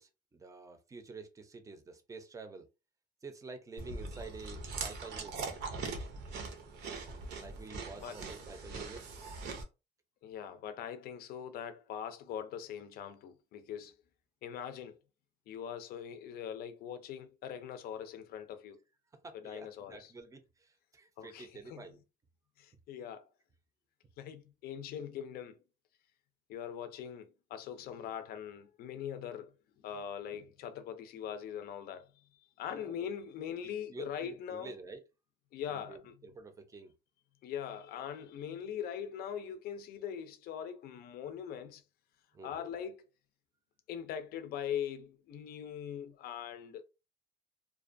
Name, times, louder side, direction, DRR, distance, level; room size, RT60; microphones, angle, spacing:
voice 1, 0.0-2.7 3.2-5.5 7.4-9.1 19.1-22.0 32.7-32.9 33.9-35.0 35.7-36.9 42.3-42.9, right 3 dB, 20° right, 0.5 m, -49 dB
Chewing mastication, 3.8-9.6, right 4 dB, 80° right, 0.7 m, -41 dB
voice 2, 10.2-13.9 14.4-15.0 15.5-18.8 19.3-20.1 21.2-21.8 22.6-23.3 24.2-25.6 26.5-29.5 29.8-32.1 32.6-34.7 35.5-36.1 37.4-41.8 42.4-43.0 43.9-46.8, left 9 dB, 65° left, 0.4 m, -41 dB
2.5 x 2.2 x 2.5 m
cardioid pair, 110°, 17 cm